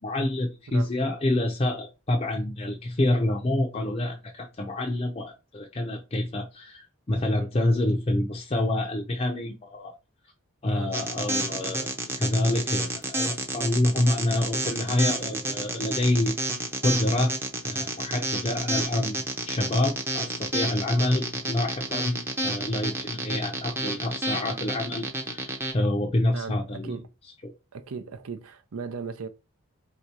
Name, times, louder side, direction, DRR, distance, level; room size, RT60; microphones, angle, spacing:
voice 1, 0.0-9.9 10.6-11.9 12.2-16.4 16.8-17.3 17.6-26.9 27.4-27.5, left 1 dB, 30° left, 0.5 m, -27 dB
sound 1, 10.9-25.7, right 2 dB, 10° right, 0.6 m, -30 dB
voice 2, 26.3-27.1 27.7-29.3, right 5 dB, 80° right, 0.5 m, -37 dB
3.7 x 2.8 x 4.6 m
head